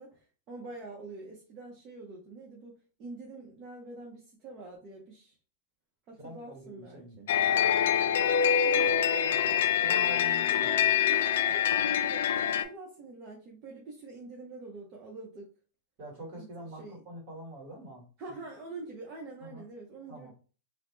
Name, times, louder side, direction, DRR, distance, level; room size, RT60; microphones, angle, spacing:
voice 1, 0.0-2.7 3.0-5.4 6.1-7.3 8.6-9.2 10.6-10.8 11.1-15.5 16.4-16.5 16.8-17.0 18.2-20.3, right 3 dB, 30° right, -2 dB, 0.6 m, -45 dB
voice 2, 6.2-7.2 9.2-9.5 9.8-10.9 16.0-18.1 19.4-19.6 20.1-20.3, right 1 dB, 45° right, -1 dB, 1.5 m, -45 dB
sound 1, 7.3-12.6, left 9 dB, 75° left, 0.3 m, -25 dB
2.7 x 2.0 x 3.1 m, 0.38 s
supercardioid pair, 165°, 0 cm